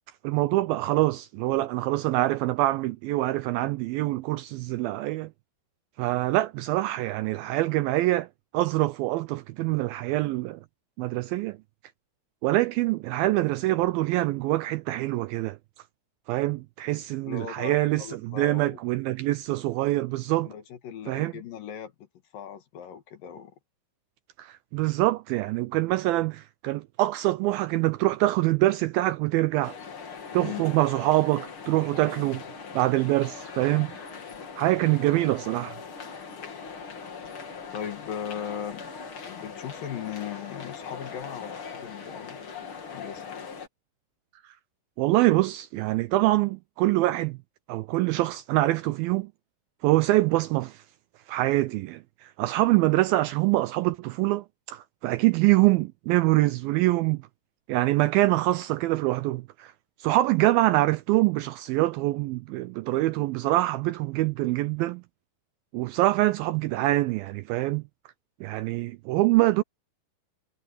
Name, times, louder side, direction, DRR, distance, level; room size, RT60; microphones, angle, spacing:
voice 1, 0.2-5.3 6.0-8.3 8.5-10.6 11.0-11.6 12.4-15.6 16.3-20.5 21.1-21.3 24.4-29.8 30.3-32.4 32.7-33.9 34.6-35.7 45.0-47.4 47.7-49.3 49.8-50.8 51.3-57.2 57.7-59.7 60.0-65.0 65.7-67.8 68.4-69.6, right 17 dB, 80° right, 2.2 m, -25 dB
voice 2, 17.3-18.8 20.4-21.9 22.3-23.5 30.4-30.6 37.7-38.8 39.3-42.4 42.9-43.3, left 9 dB, 65° left, 3.1 m, -38 dB
sound 1, 29.6-43.7, left 5 dB, 40° left, 2.5 m, -41 dB
omnidirectional pair, 4.6 m